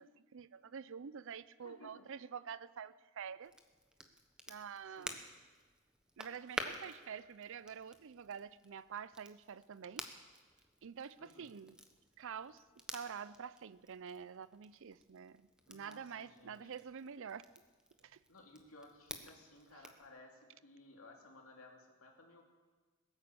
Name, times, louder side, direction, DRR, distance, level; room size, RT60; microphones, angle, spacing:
voice 1, 0.0-3.5 4.5-5.2 6.2-10.1 10.8-11.8 12.2-12.6 12.9-17.5 18.0-18.2, right 7 dB, 65° right, 17 dB, 0.5 m, -47 dB
voice 2, 1.6-2.1 4.8-5.2 11.2-11.5 15.7-16.7 18.3-22.4, left 2 dB, 80° left, 1 dB, 2.7 m, -58 dB
Crackle, 3.4-20.1, equal, 5° right, 1.1 m, -51 dB
21.0 x 9.1 x 7.1 m, 1.4 s
head